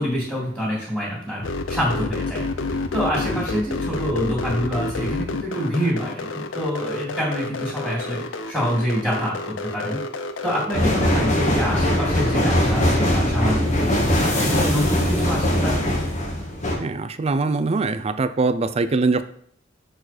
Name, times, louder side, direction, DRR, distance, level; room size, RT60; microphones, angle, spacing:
voice 1, 0.0-2.5 2.9-10.0 10.4-14.1 14.4-15.8, equal, 5° right, -10 dB, 2.3 m, -26 dB
sound 1, 1.4-12.6, left 3 dB, 75° left, 0.6 m, -29 dB
sound 2, 10.7-16.8, left 1 dB, 40° left, 1.4 m, -21 dB
voice 2, 16.8-19.2, right 3 dB, 35° right, 12 dB, 0.4 m, -22 dB
6.4 x 4.5 x 4.2 m, 0.64 s
head